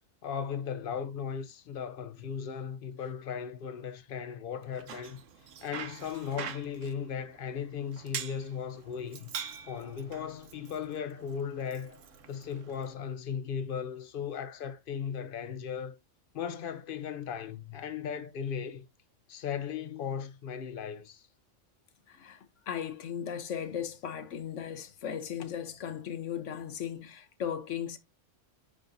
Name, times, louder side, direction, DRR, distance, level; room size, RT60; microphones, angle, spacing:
voice 1, 0.2-5.2 5.6-9.3 9.7-12.0 12.3-16.0 16.3-18.9 19.3-21.2, left 7 dB, 50° left, 0.8 m, -37 dB
Bicycle, 4.6-12.9, right 7 dB, 85° right, 1.2 m, -45 dB
voice 2, 22.1-28.0, left 8 dB, 80° left, 1.2 m, -37 dB
9.4 x 5.0 x 2.6 m
omnidirectional pair, 1.3 m